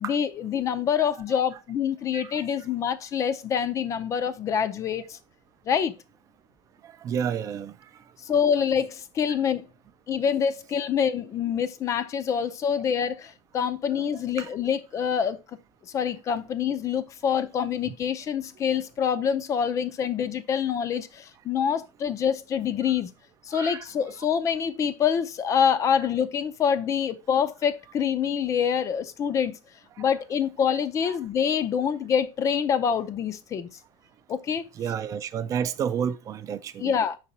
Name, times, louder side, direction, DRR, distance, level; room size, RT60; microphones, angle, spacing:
voice 1, 0.0-5.2 5.7-5.9 8.3-9.6 10.1-15.4 15.9-23.1 23.5-29.6 30.0-33.7 34.3-34.6 36.8-37.2, left 7 dB, 25° left, 0.5 m, -26 dB
voice 2, 2.1-2.4 6.8-7.8 14.4-14.5 23.5-23.8 30.0-30.1 31.1-31.2 34.8-37.0, right 8 dB, 30° right, 0.4 m, -31 dB
5.6 x 4.0 x 4.2 m
supercardioid pair, 150°, 12 cm